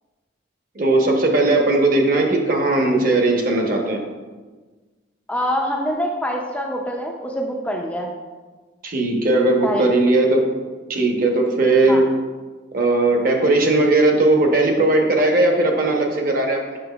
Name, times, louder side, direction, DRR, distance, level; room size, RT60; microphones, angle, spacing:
voice 1, 0.7-4.0 8.8-10.4 10.9-12.1 12.7-16.8, right 2 dB, 50° right, 1 dB, 0.8 m, -18 dB
voice 2, 5.3-8.1 9.6-9.9 11.9-12.0, equal, 5° left, 0 dB, 0.4 m, -25 dB
7.7 x 5.7 x 2.3 m, 1.3 s
head